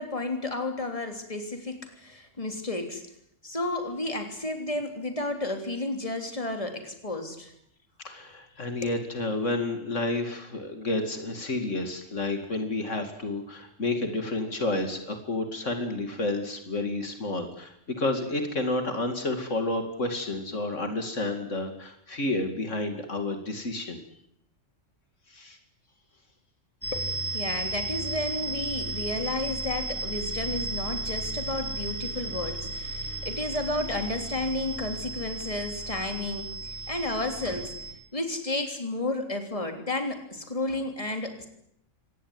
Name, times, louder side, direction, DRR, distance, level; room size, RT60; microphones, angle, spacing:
voice 1, 0.0-3.0 3.4-7.5 8.8-8.9 26.9-41.5, left 2 dB, 25° left, 5 dB, 3.5 m, -32 dB
voice 2, 8.0-24.0 25.3-25.6, left 2 dB, 70° left, 6 dB, 2.8 m, -30 dB
sound 1, 26.8-37.9, right 3 dB, 10° left, 4.3 m, -34 dB
25.0 x 18.5 x 9.6 m, 0.75 s
omnidirectional pair, 1.3 m